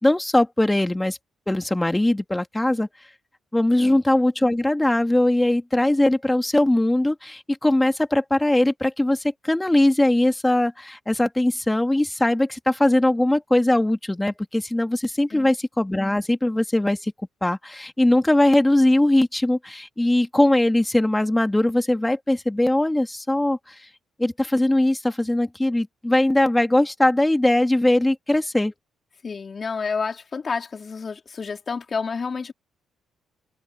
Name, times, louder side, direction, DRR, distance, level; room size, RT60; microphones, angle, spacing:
voice 1, 0.0-1.2 1.5-2.9 3.5-17.1 17.4-23.7 24.2-28.7, left 1 dB, 10° left, 2.8 m, -20 dB
voice 2, 29.2-32.5, left 5 dB, 40° left, 3.8 m, -29 dB
cardioid pair, 90°, 0 cm